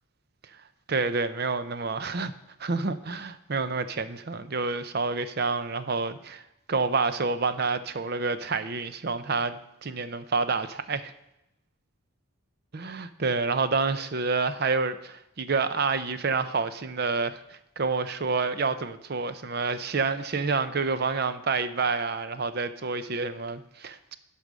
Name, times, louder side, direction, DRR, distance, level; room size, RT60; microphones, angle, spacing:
voice 1, 0.9-2.3 2.6-6.4 6.7-11.1 12.7-24.2, right 4 dB, 45° right, 12 dB, 0.6 m, -28 dB
12.0 x 5.0 x 6.2 m, 0.86 s
head